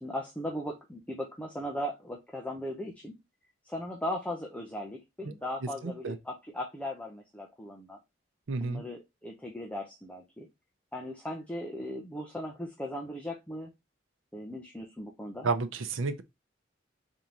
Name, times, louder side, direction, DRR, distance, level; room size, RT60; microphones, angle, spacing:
voice 1, 0.0-3.1 3.6-8.0 8.6-10.5 10.9-13.7 14.3-15.5, left 1 dB, 5° left, 0.7 m, -38 dB
voice 2, 8.5-8.8 15.4-16.2, right 4 dB, 90° right, 0.6 m, -30 dB
3.9 x 3.6 x 2.9 m
head